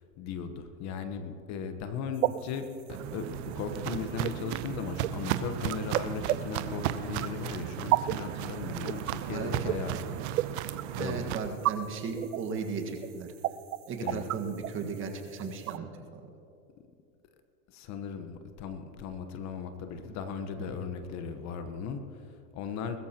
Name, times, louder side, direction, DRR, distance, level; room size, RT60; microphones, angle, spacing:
voice 1, 0.0-10.0 10.5-11.2 14.0-14.2 17.7-23.0, left 6 dB, 40° left, 8 dB, 1.2 m, -37 dB
sound 1, 2.1-15.8, right 15 dB, 75° right, 0.5 m, -34 dB
Walk footsteps, 2.9-11.4, right 12 dB, 50° right, 0.8 m, -35 dB
voice 2, 11.0-13.3 13.9-16.2 20.6-20.7, right 5 dB, 30° right, 3 dB, 1.7 m, -36 dB
21.0 x 13.5 x 3.0 m, 2.6 s
hypercardioid pair, 115°, 42 cm